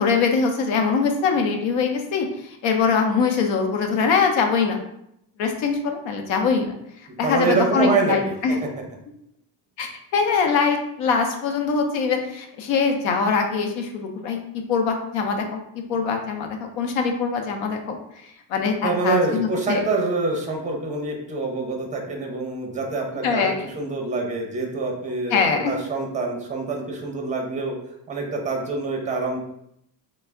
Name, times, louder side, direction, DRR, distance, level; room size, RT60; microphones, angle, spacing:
voice 1, 0.0-2.3 2.6-4.8 5.4-6.7 7.2-8.6 9.8-14.4 14.7-15.4 15.9-18.0 18.5-19.8 23.2-23.7 25.3-25.7, left 5 dB, 90° left, 4 dB, 0.7 m, -22 dB
voice 2, 7.2-8.6 18.8-27.8 28.1-29.4, right 3 dB, 15° right, 1 dB, 0.6 m, -26 dB
3.2 x 2.0 x 3.4 m, 0.76 s
cardioid pair, 125°, 44 cm